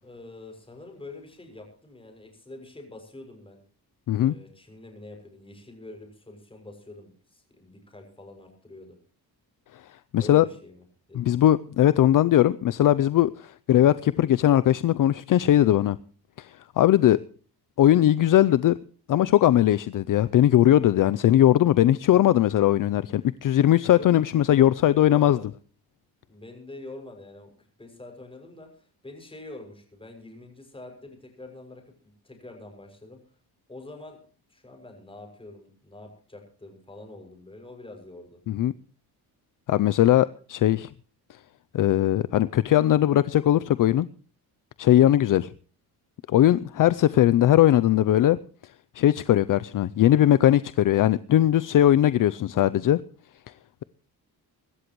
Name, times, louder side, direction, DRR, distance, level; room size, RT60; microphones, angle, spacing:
voice 1, 0.0-3.6 4.2-9.0 10.2-11.3 23.8-24.1 24.8-25.5 26.3-33.2 33.7-34.2 34.5-38.4, left 2 dB, 15° left, 6.4 m, -45 dB
voice 2, 10.1-10.4 11.1-16.0 16.4-17.2 17.8-18.7 19.1-25.4 38.5-38.7 39.7-40.9 41.7-44.1 44.8-45.5 46.3-48.4 48.9-53.0, left 12 dB, 55° left, 0.6 m, -19 dB
24.5 x 13.0 x 3.1 m
cardioid pair, 135°, 39 cm